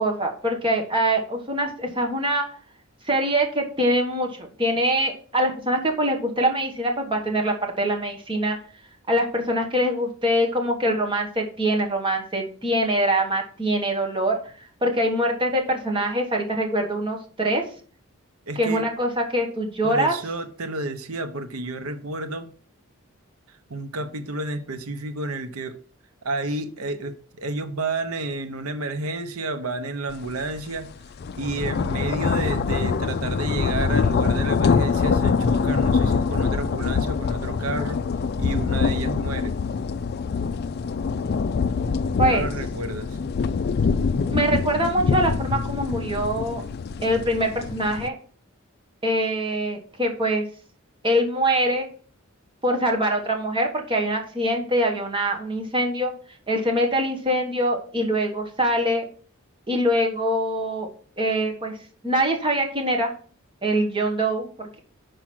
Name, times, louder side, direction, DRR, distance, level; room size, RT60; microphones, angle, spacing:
voice 1, 0.0-2.5 3.1-8.6 9.1-14.5 14.8-17.6 18.5-20.2 42.2-42.5 44.3-46.6 47.0-48.1 49.0-50.4 51.0-51.9 52.6-56.1 56.5-59.1 59.7-60.9 61.2-61.8 62.0-63.2 63.6-64.8, right 1 dB, 25° right, 1.3 m, -24 dB
voice 2, 18.5-18.8 19.8-22.5 23.7-25.8 26.2-30.9 31.4-38.0 38.4-39.5 42.2-43.2, right 2 dB, 90° right, 0.8 m, -31 dB
sound 1, 30.3-30.4 30.8-48.1, left 5 dB, 50° left, 0.3 m, -24 dB
6.1 x 4.9 x 6.0 m
head